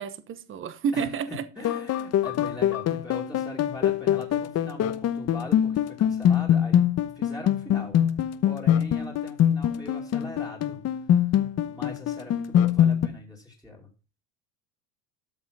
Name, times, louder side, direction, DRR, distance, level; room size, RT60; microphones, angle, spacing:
voice 1, 0.0-1.4, right 6 dB, 25° right, 0.9 m, -30 dB
voice 2, 0.9-6.8 7.1-8.0 8.4-10.8 11.1-11.3 11.7-13.9, left 1 dB, ahead, 2.5 m, -41 dB
sound 1, 1.6-13.1, left 10 dB, 30° left, 0.9 m, -23 dB
13.0 x 5.6 x 5.3 m
supercardioid pair, 125°, 50 cm